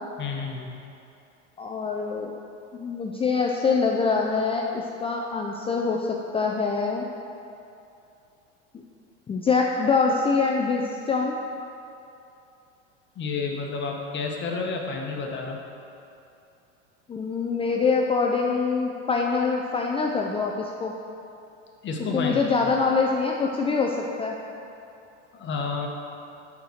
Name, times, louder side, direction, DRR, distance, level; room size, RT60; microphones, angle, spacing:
voice 1, 0.2-0.7 13.2-15.6 21.8-22.4 25.3-25.9, left 4 dB, 30° left, 1 dB, 1.1 m, -30 dB
voice 2, 1.6-2.3 2.7-7.1 9.3-11.4 17.1-20.9 22.1-24.4, left 4 dB, 15° left, 0 dB, 0.5 m, -24 dB
6.7 x 5.9 x 6.3 m, 2.7 s
supercardioid pair, 115°, 36 cm